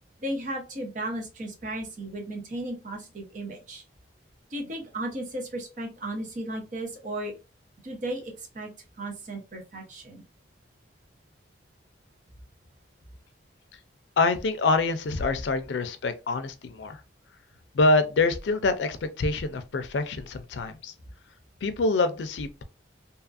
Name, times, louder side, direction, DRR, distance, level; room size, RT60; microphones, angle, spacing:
voice 1, 0.2-3.8 4.5-7.3 7.8-8.7 9.0-10.2, right 1 dB, 45° right, 0.7 m, -35 dB
voice 2, 14.2-17.0 17.7-20.9 21.6-22.6, left 3 dB, 80° left, 0.4 m, -25 dB
2.8 x 2.4 x 2.4 m
head